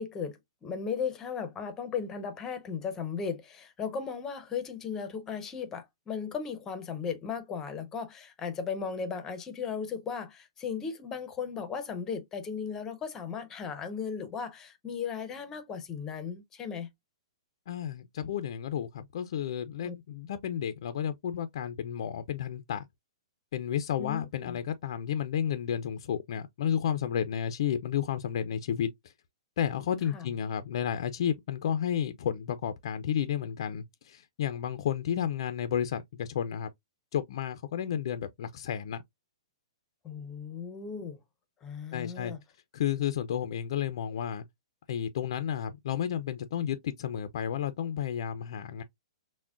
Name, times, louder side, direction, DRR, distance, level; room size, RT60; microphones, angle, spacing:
voice 1, 0.0-16.9 19.8-19.9 24.0-24.6 30.1-30.3 40.0-41.2 41.6-42.4, left 6 dB, 15° left, 0.6 m, -36 dB
voice 2, 17.7-22.9 23.5-29.1 29.6-36.7 37.1-39.0 41.9-42.3 42.7-44.4 44.9-48.8, left 9 dB, 55° left, 0.4 m, -32 dB
5.8 x 2.1 x 2.4 m
hypercardioid pair, 160°, 3 cm